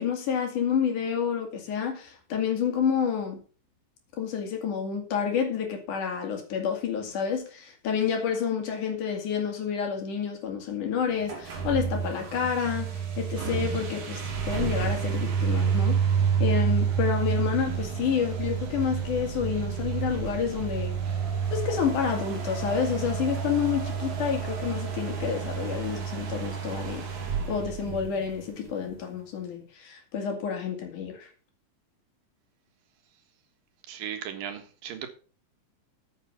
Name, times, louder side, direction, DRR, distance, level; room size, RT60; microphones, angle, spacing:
voice 1, 0.0-3.4 4.2-14.2 14.5-16.0 16.4-21.0 21.5-27.1 27.5-31.3, left 7 dB, 65° left, 3.7 m, -29 dB
sound 1, 11.2-28.7, right 7 dB, 65° right, 3.4 m, -29 dB
voice 2, 33.9-35.1, right 9 dB, 85° right, 3.2 m, -36 dB
9.3 x 7.3 x 5.7 m
omnidirectional pair, 3.9 m